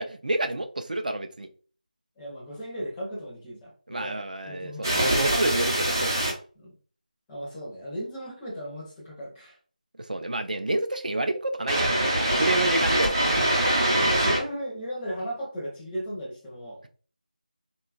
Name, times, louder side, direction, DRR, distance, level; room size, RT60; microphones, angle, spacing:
voice 1, 0.0-1.5 3.9-6.3 10.0-13.2, right 2 dB, 65° right, 7 dB, 0.5 m, -29 dB
voice 2, 2.2-5.3 6.6-6.8 7.3-9.6 13.9-16.8, equal, 5° left, -5 dB, 0.5 m, -36 dB
sound 1, 4.8-6.3 11.7-14.4, right 1 dB, 25° right, 0.8 m, -23 dB
3.8 x 2.3 x 2.3 m, 0.41 s
figure-of-eight pair, 170°, 5 cm